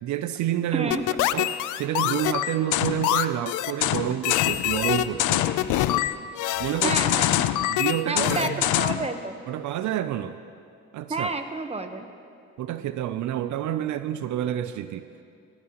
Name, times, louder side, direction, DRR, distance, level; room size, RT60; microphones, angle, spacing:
voice 1, 0.0-0.9 1.3-5.5 6.6-7.0 7.7-8.7 9.5-10.4 10.9-11.3 12.6-15.2, right 11 dB, 70° right, 12 dB, 0.5 m, -29 dB
voice 2, 0.7-1.0 6.8-7.6 8.1-9.4 11.1-12.1, right 3 dB, 20° right, 7 dB, 1.0 m, -30 dB
sound 1, 0.9-9.1, left 14 dB, 85° left, 0.5 m, -24 dB
sound 2, 4.5-6.0 6.5-7.7 8.2-9.0, left 6 dB, 35° left, 0.6 m, -41 dB
18.5 x 15.5 x 3.0 m, 2.4 s
cardioid pair, 90°, 30 cm